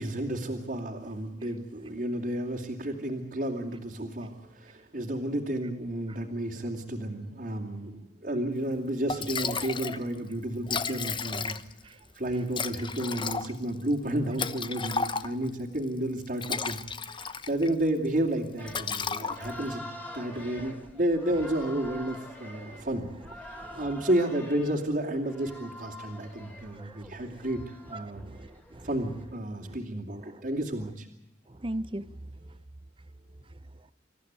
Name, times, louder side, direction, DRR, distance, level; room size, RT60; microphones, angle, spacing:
voice 1, 0.0-11.6 12.1-16.8 17.1-23.1 23.3-28.2 28.8-31.1, right 1 dB, 50° right, -2 dB, 2.7 m, -31 dB
Liquid, 8.7-8.8 9.1-10.0 10.3-10.4 10.6-11.8 12.5-15.5 16.2-17.7 18.0-18.3 18.7-19.7, left 5 dB, 30° left, 1.0 m, -33 dB
sound 1, 18.6-29.4, left 1 dB, 10° left, 3.5 m, -46 dB
voice 2, 27.9-28.9 29.6-29.8 30.3-30.5 31.5-32.1, right 1 dB, 30° right, 16 dB, 0.8 m, -40 dB
27.0 x 14.5 x 9.5 m, 0.91 s
head